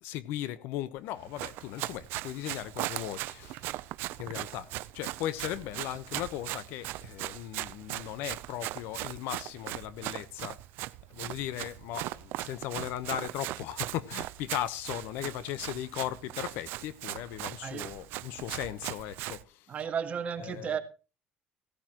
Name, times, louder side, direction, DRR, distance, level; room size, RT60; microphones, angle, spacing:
voice 1, 0.0-3.7 4.2-4.7 4.9-10.6 11.1-19.9 20.4-20.8, left 13 dB, 85° left, 1.0 m, -37 dB
Run, 1.2-19.4, right 17 dB, 80° right, 0.6 m, -39 dB
voice 2, 19.7-20.8, right 7 dB, 40° right, 1.8 m, -33 dB
17.0 x 13.5 x 3.0 m
cardioid pair, 130°, 4 cm